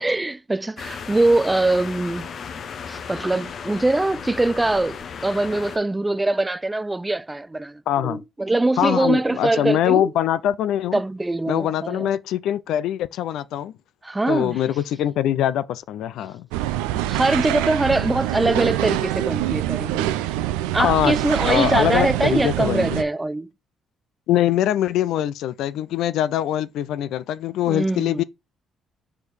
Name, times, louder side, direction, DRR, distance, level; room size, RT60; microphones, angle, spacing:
voice 1, 0.0-2.3 2.9-10.1 10.9-12.1 14.0-14.6 17.1-20.1 20.7-23.5 27.7-28.2, right 2 dB, 20° right, 0.4 m, -23 dB
sound 1, 0.8-5.8, left 6 dB, 55° left, 0.7 m, -35 dB
voice 2, 7.9-8.2 8.8-11.0 11.5-13.7 14.3-16.5 20.8-21.1 21.4-23.0 24.3-28.2, left 11 dB, 70° left, 0.3 m, -23 dB
sound 2, 16.5-23.0, right 14 dB, 80° right, 0.4 m, -25 dB
4.8 x 4.8 x 4.2 m
hypercardioid pair, 50°, 0 cm